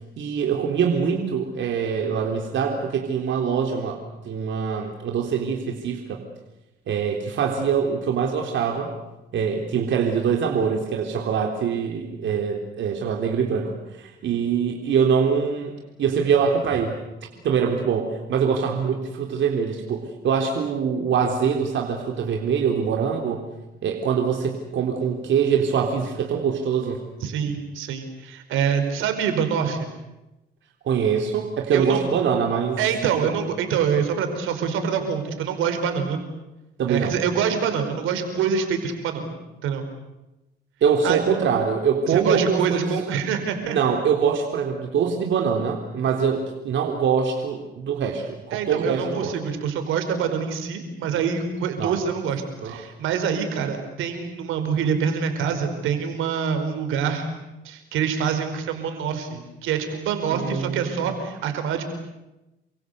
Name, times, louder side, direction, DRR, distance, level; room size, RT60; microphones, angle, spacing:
voice 1, 0.2-6.3 6.9-8.9 9.3-15.7 16.0-17.0 17.4-23.5 23.8-27.0 30.8-32.8 36.8-37.2 40.8-42.9 43.6-49.4 51.8-52.0 52.6-52.8 60.3-61.1, right 6 dB, 70° right, 2 dB, 3.7 m, -24 dB
voice 2, 27.2-29.9 31.7-32.1 32.8-36.2 36.9-39.3 39.6-39.8 41.0-41.2 42.1-43.8 48.5-57.3 57.6-61.8, right 7 dB, 90° right, 7 dB, 5.0 m, -25 dB
29.5 x 23.5 x 8.1 m, 0.99 s
cardioid pair, 90°, 20 cm